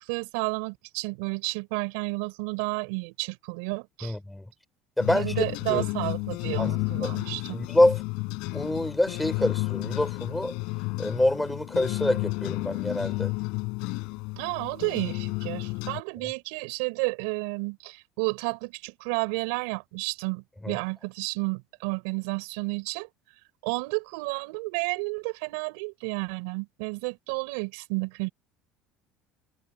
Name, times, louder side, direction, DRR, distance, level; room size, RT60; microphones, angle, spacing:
voice 1, 0.0-4.2 5.1-7.6 14.4-23.1 23.6-28.3, right 29 dB, 85° right, 6.0 m, -31 dB
voice 2, 4.0-4.4 5.0-5.3 5.7-5.8 6.6-6.7 7.0-7.1 7.5-8.0 8.5-10.5 11.0-13.3 20.6-20.8, left 1 dB, 5° left, 6.4 m, -26 dB
sound 1, 5.0-16.0, left 28 dB, 75° left, 4.9 m, -32 dB
supercardioid pair, 115°, 0 cm